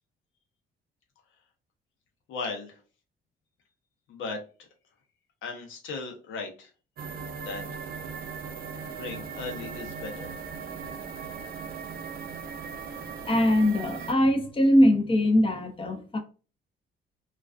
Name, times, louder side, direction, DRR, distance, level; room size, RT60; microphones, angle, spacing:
voice 1, 2.3-2.8 4.1-4.4 5.4-6.7 7.4-7.6 8.9-10.3, left 4 dB, 80° left, 0.8 m, -36 dB
sound 1, 7.0-14.1, right 6 dB, 50° right, 0.5 m, -38 dB
voice 2, 13.3-16.2, left 1 dB, 25° left, 0.6 m, -22 dB
2.4 x 2.2 x 2.3 m
cardioid pair, 90°, 20 cm